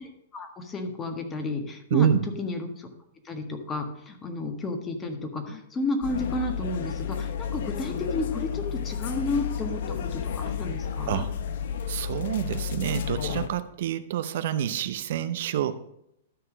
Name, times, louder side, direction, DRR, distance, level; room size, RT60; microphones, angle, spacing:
voice 1, 0.0-2.1 2.4-2.9 3.2-11.3, left 2 dB, 20° left, 5 dB, 1.6 m, -32 dB
voice 2, 1.9-2.3 11.1-11.3 11.9-15.7, right 9 dB, 65° right, 12 dB, 0.6 m, -27 dB
sound 1, 6.0-13.5, left 7 dB, 65° left, 1.0 m, -32 dB
12.5 x 4.8 x 6.2 m, 0.76 s
hypercardioid pair, 140°, 0 cm